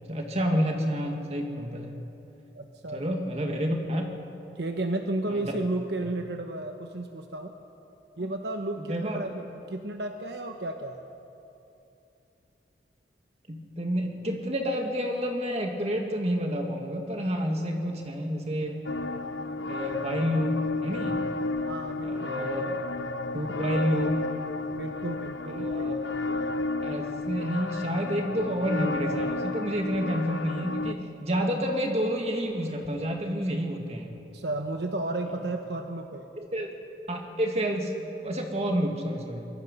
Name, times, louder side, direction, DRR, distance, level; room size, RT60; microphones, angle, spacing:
voice 1, 0.1-2.0 2.9-4.1 5.3-5.4 8.9-9.2 13.5-18.8 19.7-21.2 22.0-22.7 23.3-24.2 25.5-26.4 26.8-34.1 36.4-36.7 37.1-37.9 38.2-39.5, equal, 35° right, 2 dB, 2.2 m, -29 dB
voice 2, 2.5-3.2 4.5-7.5 8.2-11.1 21.6-22.8 24.8-25.7 34.3-36.3, right 2 dB, 70° right, 4 dB, 1.1 m, -33 dB
sound 1, 18.9-30.9, left 3 dB, 90° left, 0.8 m, -32 dB
24.0 x 22.0 x 5.5 m, 2.9 s
head